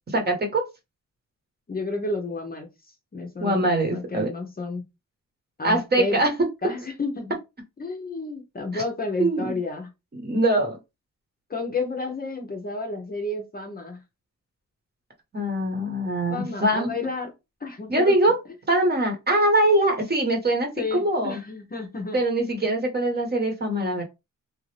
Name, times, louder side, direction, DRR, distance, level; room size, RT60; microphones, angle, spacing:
voice 1, 0.1-0.6 3.4-4.3 5.6-6.3 8.7-8.8 9.2-9.6 10.1-10.8 15.3-16.9 17.9-18.4 18.7-21.4 22.1-24.0, right 1 dB, 30° right, 2 dB, 1.0 m, -23 dB
voice 2, 1.7-2.7 3.1-4.9 5.6-6.2 6.6-7.4 7.8-9.9 11.5-14.0 16.3-17.3 17.6-18.2 20.8-22.2, left 3 dB, 30° left, 3 dB, 0.7 m, -31 dB
2.9 x 2.5 x 3.2 m, 0.23 s
wide cardioid pair, 145°, 32 cm